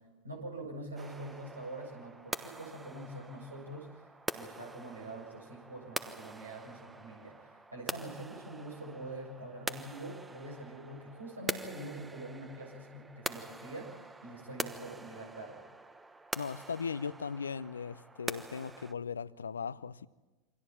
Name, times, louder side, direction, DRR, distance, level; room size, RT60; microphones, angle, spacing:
voice 1, 0.2-4.1 4.4-15.7, right 1 dB, 80° right, 7.4 m, -45 dB
sound 1, 1.0-18.9, right 2 dB, 10° right, 1.2 m, -44 dB
voice 2, 16.4-20.1, left 6 dB, 75° left, 0.7 m, -38 dB
28.0 x 25.5 x 4.4 m
figure-of-eight pair, 85°, 0 cm